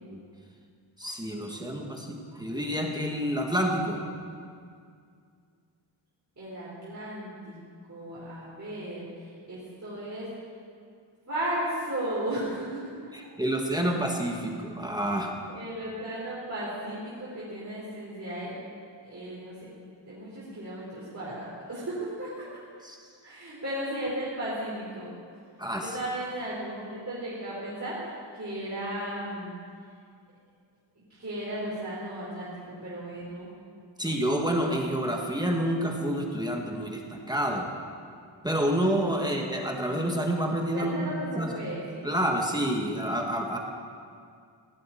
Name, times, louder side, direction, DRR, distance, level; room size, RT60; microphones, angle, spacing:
voice 1, 1.0-4.0 13.1-15.3 22.8-23.0 25.6-25.9 34.0-37.7 38.4-41.5 42.0-43.6, right 1 dB, 10° right, 1 dB, 1.5 m, -28 dB
voice 2, 6.4-7.6 7.9-10.3 11.3-12.9 15.5-18.5 19.0-19.5 20.1-22.4 23.2-25.1 25.8-29.5 31.2-33.5 40.7-42.1, right 1 dB, 35° right, -9 dB, 4.3 m, -35 dB
17.5 x 7.6 x 9.3 m, 2.2 s
wide cardioid pair, 120°, 46 cm